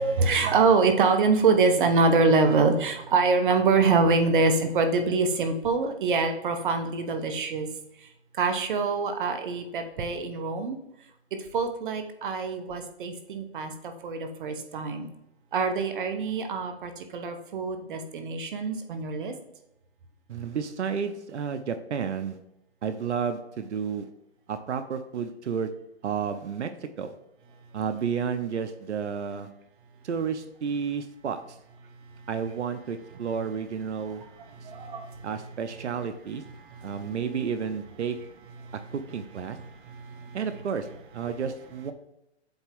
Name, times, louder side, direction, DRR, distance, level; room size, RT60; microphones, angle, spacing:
voice 1, 0.0-7.7 8.4-10.8 11.5-13.7 14.0-15.1 15.5-19.3 34.6-35.2 36.7-36.9 38.6-38.7 39.9-40.4, right 4 dB, 50° right, 6 dB, 1.1 m, -25 dB
voice 2, 20.3-22.4 22.8-24.1 24.5-25.7 26.0-27.1 27.7-29.5 30.0-31.6 32.3-34.2 34.6-34.7 35.2-36.4 36.8-38.2 38.9-39.6 40.3-40.9 41.1-41.9, right 6 dB, 85° right, 9 dB, 0.8 m, -31 dB
8.0 x 3.5 x 3.5 m, 0.86 s
hypercardioid pair, 155°, 34 cm